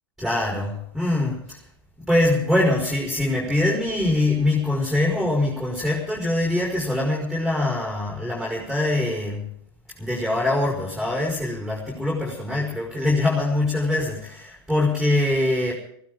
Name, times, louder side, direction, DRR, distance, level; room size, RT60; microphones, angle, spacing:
voice 1, 0.2-1.6 2.0-9.5 10.0-15.7, left 2 dB, ahead, -2 dB, 4.8 m, -23 dB
23.5 x 15.5 x 3.8 m, 0.69 s
figure-of-eight pair, 95°, 13 cm